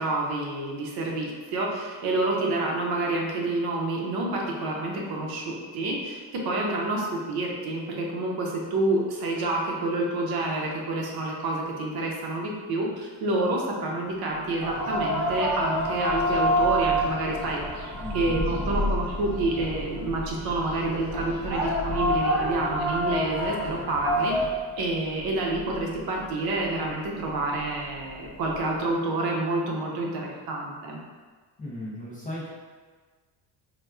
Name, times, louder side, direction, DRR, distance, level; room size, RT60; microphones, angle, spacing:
voice 1, 0.0-24.3 24.8-31.0, right 2 dB, 60° right, -1 dB, 0.6 m, -28 dB
Thunder, 14.3-28.9, left 2 dB, ahead, 0.9 m, -38 dB
sound 1, 14.6-24.5, equal, 30° right, 0.9 m, -28 dB
voice 2, 18.0-18.5 31.6-32.5, left 1 dB, 20° left, -7 dB, 0.4 m, -36 dB
4.1 x 2.3 x 2.3 m, 1.4 s
cardioid pair, 155°, 43 cm